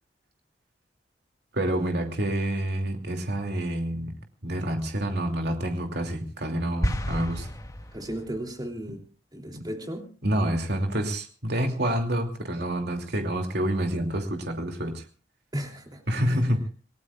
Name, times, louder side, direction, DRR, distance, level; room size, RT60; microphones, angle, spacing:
voice 1, 1.5-4.1 4.4-7.5 9.5-9.6 10.2-15.0 16.1-16.7, right 1 dB, 65° right, 3 dB, 2.8 m, -28 dB
sound 1, 6.8-8.4, equal, 20° left, 1.7 m, -31 dB
voice 2, 7.9-9.0 9.3-10.0 15.5-16.5, right 1 dB, 25° right, 2 dB, 3.2 m, -35 dB
28.5 x 18.5 x 2.4 m, 0.36 s
head